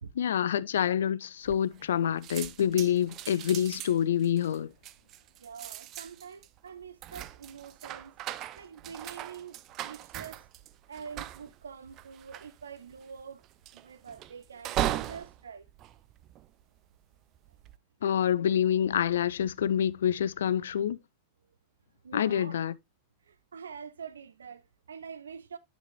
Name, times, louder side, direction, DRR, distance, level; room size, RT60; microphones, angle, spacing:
voice 1, 0.2-4.7 18.0-21.0 22.1-22.7, left 9 dB, 65° left, 0.4 m, -27 dB
sound 1, 1.4-16.8 17.3-17.8, right 13 dB, 35° right, 0.5 m, -39 dB
voice 2, 5.4-8.2 8.6-9.6 9.8-10.4 10.9-13.4 13.7-15.7 20.6-20.7 22.0-22.6 23.2-25.6, right 6 dB, 70° right, 0.8 m, -45 dB
10.5 x 5.5 x 2.9 m
figure-of-eight pair, 90°, 0 cm